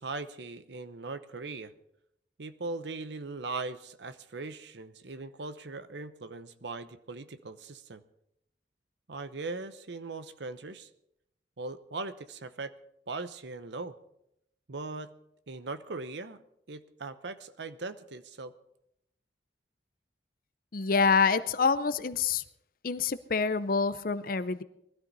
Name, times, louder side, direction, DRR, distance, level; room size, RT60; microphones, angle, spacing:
voice 1, 0.0-1.7 2.4-8.0 9.1-10.9 11.6-12.7 13.1-13.9 14.7-15.1 15.5-16.4 16.7-18.5, right 3 dB, 70° right, 11 dB, 0.8 m, -39 dB
voice 2, 20.7-22.4 22.8-24.6, left 5 dB, 50° left, 14 dB, 0.6 m, -26 dB
20.5 x 13.0 x 4.1 m, 0.78 s
head